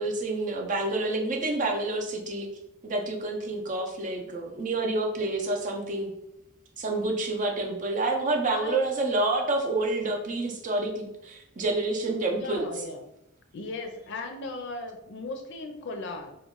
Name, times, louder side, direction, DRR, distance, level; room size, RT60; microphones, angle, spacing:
voice 1, 0.0-2.5 2.8-6.1 6.8-12.7, right 2 dB, 40° right, 2 dB, 0.5 m, -28 dB
voice 2, 12.3-13.0 13.5-16.4, left 3 dB, 60° left, 5 dB, 0.5 m, -36 dB
3.0 x 2.2 x 3.6 m, 0.84 s
head